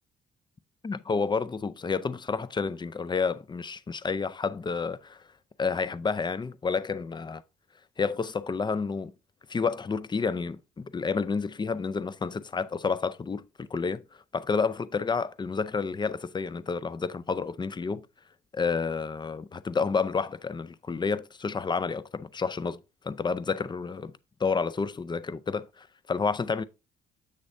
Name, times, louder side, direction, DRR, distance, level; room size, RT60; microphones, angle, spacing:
voice 1, 0.8-5.2 5.6-7.4 8.0-9.1 9.5-14.0 14.3-18.1 18.5-24.1 24.4-26.6, left 5 dB, 20° left, 0.5 m, -30 dB
8.0 x 6.6 x 2.6 m
cardioid pair, 90°, 20 cm